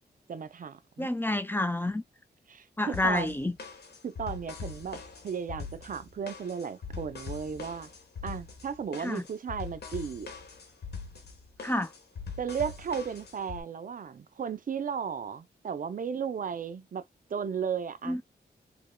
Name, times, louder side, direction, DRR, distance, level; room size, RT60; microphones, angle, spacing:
voice 1, 0.3-1.1 2.5-3.3 4.0-7.9 8.2-10.3 12.4-17.0 17.3-18.2, right 7 dB, 50° right, 0.5 m, -35 dB
voice 2, 1.0-2.0 2.8-3.6 9.0-9.3 11.6-11.9 18.0-18.2, left 1 dB, 10° left, 0.5 m, -29 dB
sound 1, 2.9-13.6, left 5 dB, 70° left, 1.3 m, -42 dB
3.7 x 3.4 x 2.2 m
wide cardioid pair, 105°, 17 cm